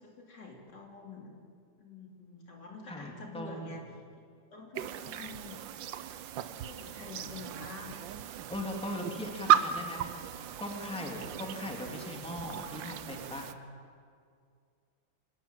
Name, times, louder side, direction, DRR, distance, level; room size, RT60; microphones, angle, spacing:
voice 1, 0.0-1.3 1.8-3.8 4.5-5.6 6.4-8.0 8.8-9.8 10.4-10.6 11.8-11.9, left 4 dB, 65° left, 0 dB, 3.6 m, -48 dB
voice 2, 2.9-3.7 8.5-10.1 10.6-13.5, left 1 dB, 5° left, 0 dB, 2.5 m, -39 dB
sound 1, 4.7-13.5, right 10 dB, 85° right, 1.5 m, -34 dB
25.5 x 14.0 x 9.0 m, 2.2 s
omnidirectional pair, 2.0 m